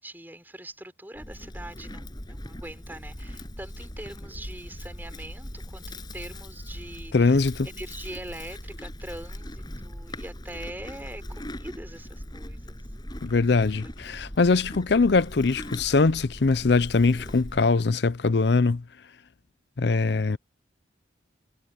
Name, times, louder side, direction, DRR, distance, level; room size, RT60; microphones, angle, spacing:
voice 1, 0.0-7.4 7.6-12.8, right 1 dB, 10° right, 5.1 m, -42 dB
Livestock farm animals working animals, 1.1-17.7, left 1 dB, 25° left, 6.5 m, -40 dB
voice 2, 7.1-7.7 13.2-18.8 19.8-20.4, left 3 dB, 65° left, 0.6 m, -22 dB
head